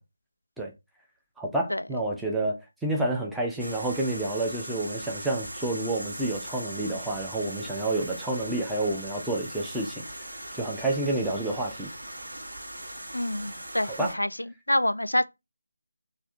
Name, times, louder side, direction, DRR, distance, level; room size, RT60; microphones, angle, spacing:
voice 1, 1.4-10.3 10.5-11.9 14.0-14.2, right 2 dB, ahead, 0.5 m, -29 dB
sound 1, 3.6-14.1, right 1 dB, 65° right, 1.2 m, -40 dB
voice 2, 13.1-14.3 14.7-15.3, left 1 dB, 80° left, 0.3 m, -26 dB
3.3 x 2.5 x 2.5 m
figure-of-eight pair, 160°, 0 cm